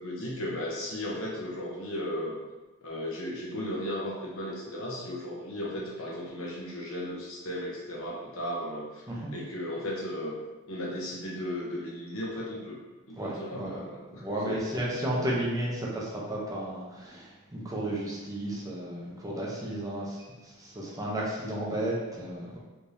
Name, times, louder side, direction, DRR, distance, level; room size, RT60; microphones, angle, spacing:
voice 1, 0.0-2.4 2.8-10.3 10.7-12.8 13.1-14.6, left 1 dB, 65° left, -4 dB, 0.9 m, -35 dB
voice 2, 13.2-22.6, right 1 dB, 15° right, -5 dB, 0.6 m, -33 dB
3.3 x 3.3 x 2.7 m, 1.1 s
head